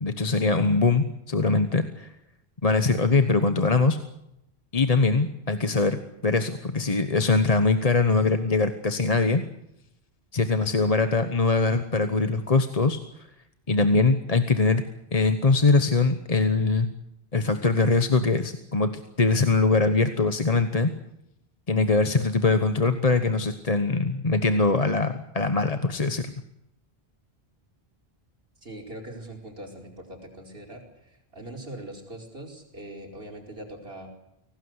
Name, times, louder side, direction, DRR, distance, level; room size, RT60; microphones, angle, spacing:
voice 1, 0.0-2.1 2.6-4.0 4.7-9.4 10.3-13.0 13.7-14.8 15.1-16.9 17.3-18.9 19.2-20.9 21.7-26.3, left 3 dB, 40° left, 9 dB, 1.2 m, -22 dB
voice 2, 28.6-34.1, right 1 dB, 70° right, 2 dB, 5.2 m, -41 dB
24.5 x 18.0 x 8.1 m, 0.82 s
omnidirectional pair, 1.0 m